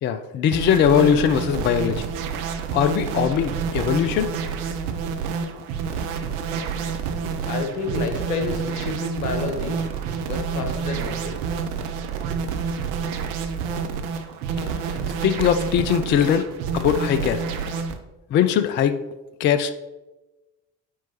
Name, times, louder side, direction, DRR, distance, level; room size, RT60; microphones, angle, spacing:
voice 1, 0.0-2.1 2.7-4.3 15.2-16.5 16.7-17.8 18.3-19.0 19.4-19.7, left 8 dB, 25° left, 10 dB, 0.3 m, -21 dB
sound 1, 0.5-18.0, right 6 dB, 60° right, 0.8 m, -28 dB
voice 2, 7.0-9.8 10.3-11.4, left 3 dB, 75° left, 6 dB, 1.0 m, -30 dB
8.8 x 4.6 x 2.9 m, 1.1 s
figure-of-eight pair, 50°, 49 cm